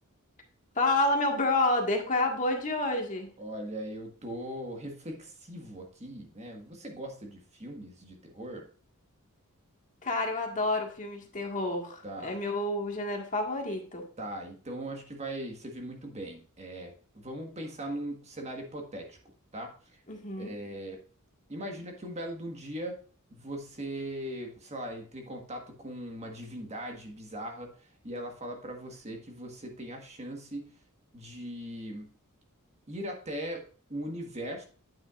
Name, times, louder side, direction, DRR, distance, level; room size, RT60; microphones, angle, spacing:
voice 1, 0.7-3.3 10.0-14.0 20.1-20.5, left 2 dB, 35° left, 2 dB, 1.7 m, -29 dB
voice 2, 3.4-8.7 12.0-12.4 14.2-19.2 19.5-20.0 20.4-21.0 21.5-23.0 23.3-30.7 31.1-32.1 32.9-33.6 33.9-34.6, right 1 dB, 30° right, 3 dB, 1.5 m, -39 dB
9.2 x 8.6 x 2.5 m, 0.41 s
head